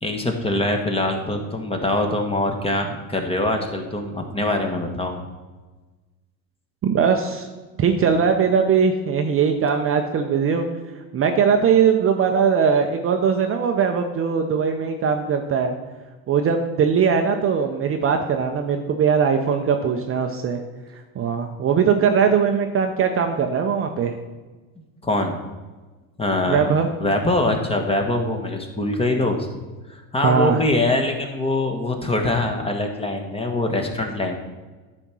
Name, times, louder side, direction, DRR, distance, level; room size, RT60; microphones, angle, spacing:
voice 1, 0.0-5.2 25.0-25.4 26.2-26.7 27.0-29.5 29.9-34.3, left 2 dB, 15° left, 4 dB, 1.3 m, -23 dB
voice 2, 6.8-7.5 7.8-10.7 11.1-15.7 16.3-20.6 21.2-24.2 26.5-26.9 30.2-30.6, right 6 dB, 30° right, 5 dB, 0.7 m, -20 dB
10.0 x 4.4 x 6.2 m, 1.3 s
hypercardioid pair, 95°, 44 cm